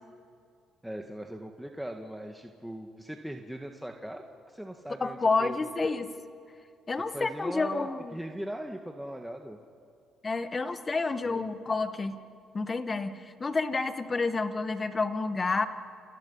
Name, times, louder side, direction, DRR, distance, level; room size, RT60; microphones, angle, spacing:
voice 1, 0.8-5.9 7.1-9.6 11.2-11.5, equal, 5° right, 3 dB, 1.8 m, -40 dB
voice 2, 5.0-6.1 6.9-8.2 10.2-12.2 12.5-15.7, left 3 dB, 30° left, 10 dB, 1.8 m, -29 dB
29.5 x 28.0 x 5.7 m, 2.4 s
supercardioid pair, 75°, 0 cm